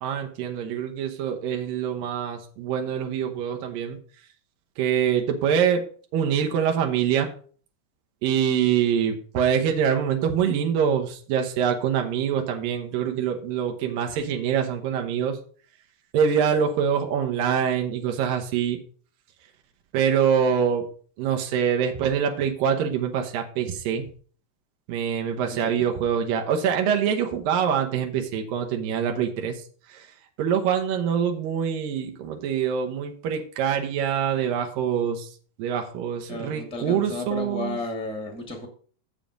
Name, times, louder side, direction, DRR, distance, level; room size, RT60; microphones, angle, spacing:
voice 1, 0.0-4.0 4.8-5.8 6.1-7.3 8.2-15.4 16.1-18.8 19.9-20.8 21.2-24.0 24.9-29.6 29.9-30.1 30.4-35.3 35.6-37.8, right 8 dB, 90° right, 3 dB, 2.8 m, -25 dB
voice 2, 36.3-38.7, left 2 dB, 5° left, 3 dB, 0.6 m, -33 dB
7.3 x 7.3 x 5.1 m, 0.44 s
omnidirectional pair, 3.9 m